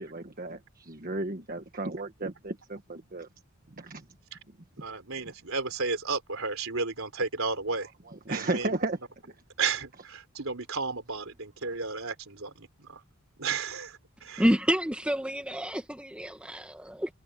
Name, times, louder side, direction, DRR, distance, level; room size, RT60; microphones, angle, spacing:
voice 1, 0.0-3.3 3.8-4.0 8.1-9.0, right 2 dB, 40° right, 1.4 m, -34 dB
voice 2, 4.8-7.9 8.3-8.7 9.6-13.0 13.4-14.4, right 4 dB, 65° right, 4.2 m, -33 dB
voice 3, 14.4-17.1, equal, 5° right, 1.5 m, -28 dB
head